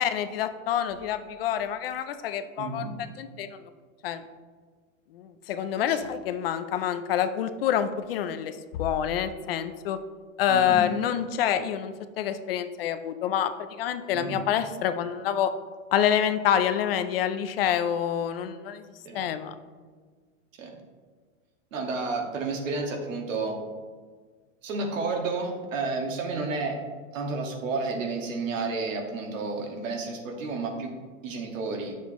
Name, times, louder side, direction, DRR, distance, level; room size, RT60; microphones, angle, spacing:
voice 1, 0.0-2.9 3.2-3.5 4.0-4.2 5.1-10.0 10.4-13.5 13.8-15.5 15.9-18.8 19.1-19.5, left 9 dB, 50° left, 10 dB, 0.6 m, -27 dB
voice 2, 2.6-3.0 5.8-6.0 10.5-10.9 14.1-14.5 19.0-19.2 20.6-20.8 21.7-23.6 24.6-26.8 27.1-31.9, right 3 dB, 75° right, 2 dB, 1.8 m, -31 dB
9.7 x 7.3 x 3.1 m, 1.5 s
supercardioid pair, 180°, 39 cm